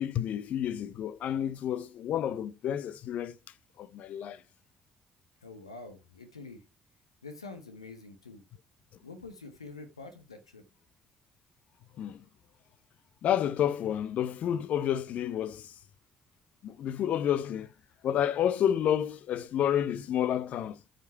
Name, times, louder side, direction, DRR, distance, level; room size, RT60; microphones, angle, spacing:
voice 1, 0.0-3.3 3.8-4.4 12.0-12.2 13.2-15.7 16.6-17.7 18.0-20.8, left 10 dB, 55° left, 0.6 m, -30 dB
voice 2, 5.4-6.6 7.2-8.4 9.0-10.6, left 3 dB, 85° left, 1.1 m, -46 dB
13.0 x 5.2 x 4.5 m
figure-of-eight pair, 45°, 3 cm